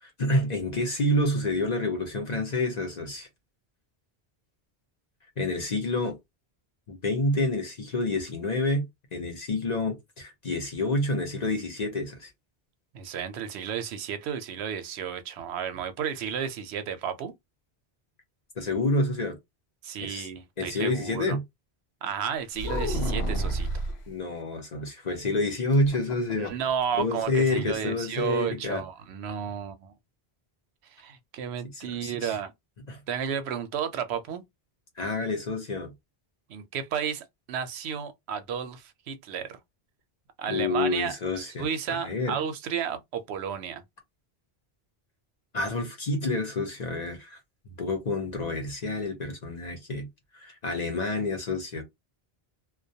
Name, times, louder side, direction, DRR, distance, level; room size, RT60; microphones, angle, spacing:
voice 1, 0.0-3.3 5.4-6.2 6.9-12.3 18.6-19.4 20.0-20.3 20.6-21.4 24.1-26.5 27.0-28.8 31.7-32.4 32.9-33.0 35.0-35.9 40.5-42.4 45.5-47.4 47.8-50.1 50.3-51.8, left 2 dB, 45° left, 0.7 m, -28 dB
voice 2, 12.9-17.3 19.8-21.4 22.0-23.7 26.4-29.9 30.9-32.5 33.1-34.4 36.5-39.6 40.4-43.8, right 8 dB, 85° right, 0.8 m, -32 dB
sound 1, 22.6-24.0 25.7-26.7 27.0-27.1 27.4-27.7, right 1 dB, 80° left, 0.9 m, -29 dB
2.2 x 2.1 x 2.6 m
omnidirectional pair, 1.1 m